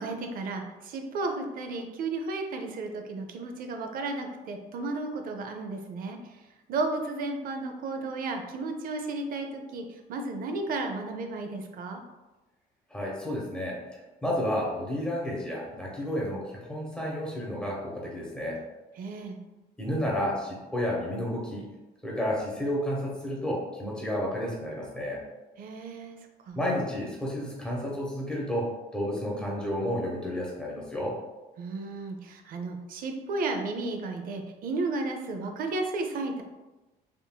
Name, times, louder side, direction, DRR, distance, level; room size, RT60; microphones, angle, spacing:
voice 1, 0.0-6.2 6.7-12.0 19.0-19.4 25.6-26.2 26.5-26.6 31.6-36.4, right 3 dB, 60° right, 5 dB, 0.5 m, -33 dB
voice 2, 12.9-13.8 14.2-18.6 19.8-21.7 22.0-25.2 26.5-31.1, equal, 5° left, -4 dB, 1.0 m, -31 dB
3.6 x 2.6 x 2.2 m, 1.1 s
cardioid pair, 110°, 17 cm